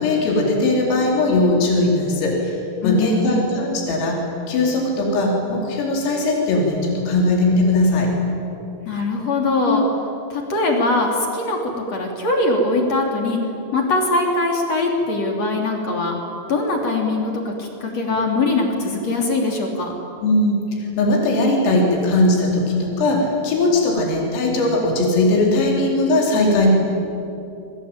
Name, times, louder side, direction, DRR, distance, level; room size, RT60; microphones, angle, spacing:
voice 1, 0.0-4.2 4.5-8.1 9.6-9.8 20.2-26.7, left 2 dB, 80° left, -1 dB, 6.8 m, -19 dB
voice 2, 2.8-3.3 8.8-9.8 10.3-13.4 13.7-16.2 16.5-19.9, left 2 dB, 35° left, 1 dB, 3.7 m, -21 dB
27.5 x 23.5 x 9.0 m, 2.8 s
omnidirectional pair, 5.9 m